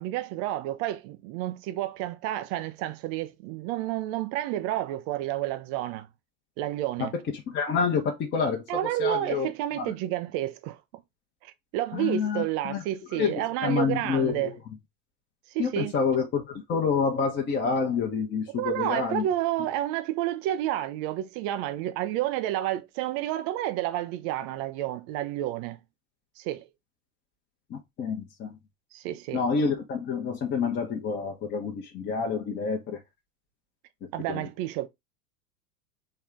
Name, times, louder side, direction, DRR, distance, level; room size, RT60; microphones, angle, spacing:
voice 1, 0.0-6.1 6.6-7.1 8.7-10.8 11.4-14.6 15.5-16.0 18.5-25.8 26.4-26.7 28.9-29.4 34.1-34.9, right 13 dB, 25° right, 0.3 m, -30 dB
voice 2, 7.5-8.6 9.0-9.5 9.8-9.9 11.9-12.8 13.1-14.5 15.6-19.3 27.7-28.5 29.3-33.0 34.3-34.4, left 5 dB, 25° left, 1.0 m, -28 dB
4.5 x 3.2 x 3.6 m
figure-of-eight pair, 90°, 44 cm